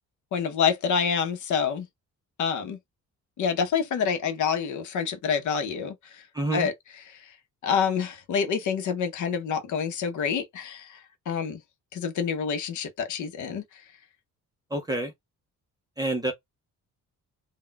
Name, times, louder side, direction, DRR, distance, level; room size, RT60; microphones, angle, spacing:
voice 1, 0.3-1.9 2.4-2.8 3.4-6.2 6.5-6.7 7.1-7.3 7.6-11.6 11.9-13.8, left 6 dB, 60° left, 0.7 m, -27 dB
voice 2, 6.3-6.7 14.7-15.1 16.0-16.3, right 2 dB, 10° right, 0.5 m, -28 dB
2.2 x 2.2 x 3.8 m
cardioid pair, 175°, 33 cm